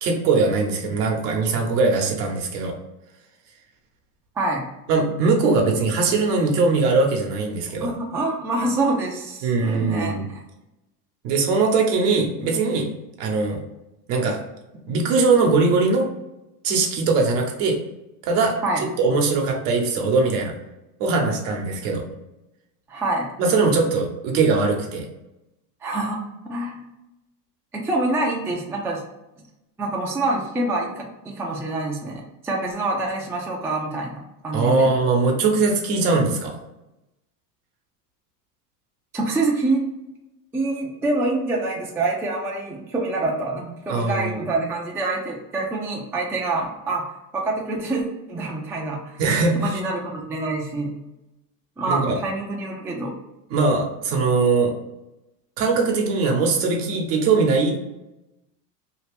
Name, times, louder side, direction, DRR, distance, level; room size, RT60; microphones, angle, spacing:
voice 1, 0.0-2.7 4.9-7.9 9.4-10.3 11.2-12.9 13.2-13.6 14.1-14.4 14.9-16.1 16.6-17.8 18.2-20.5 21.0-22.0 23.4-25.1 34.5-36.6 43.9-44.4 49.2-49.8 51.9-52.2 53.5-54.7 55.6-57.8, right 4 dB, 70° right, 1 dB, 1.0 m, -21 dB
voice 2, 4.4-4.7 7.8-10.1 18.6-18.8 22.9-23.3 25.8-26.9 27.7-29.0 29.8-34.9 39.1-39.9 40.5-49.2 49.5-50.9 51.8-53.1, right 2 dB, 5° right, -2 dB, 0.3 m, -26 dB
2.8 x 2.4 x 3.3 m, 0.94 s
supercardioid pair, 105°, 48 cm